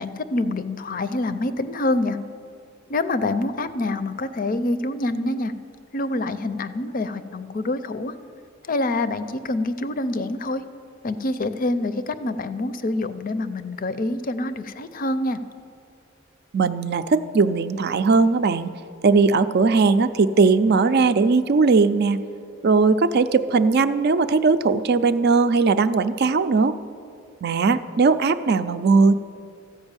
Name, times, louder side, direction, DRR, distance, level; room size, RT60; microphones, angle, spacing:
voice 1, 0.0-2.2 2.9-5.5 5.9-8.1 8.7-10.6 11.0-15.4, left 2 dB, 45° left, 12 dB, 0.5 m, -26 dB
voice 2, 16.5-18.7 19.0-22.2 22.6-26.8 27.4-29.1, right 4 dB, 55° right, 11 dB, 0.5 m, -19 dB
14.0 x 5.3 x 8.9 m, 2.4 s
head